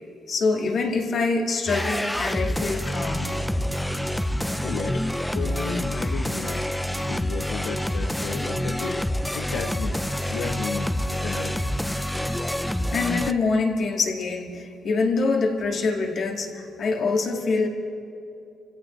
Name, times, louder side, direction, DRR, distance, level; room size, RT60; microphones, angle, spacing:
voice 1, 0.3-3.3 12.9-17.7, left 4 dB, 55° left, 2 dB, 2.2 m, -25 dB
sound 1, 1.7-13.3, equal, 5° left, 0.6 m, -27 dB
voice 2, 4.6-5.0 5.3-6.7 7.1-9.1 9.3-10.0 10.3-11.6, left 6 dB, 85° left, 1 dB, 1.0 m, -34 dB
27.0 x 16.5 x 3.2 m, 2.7 s
cardioid pair, 90°, 0 cm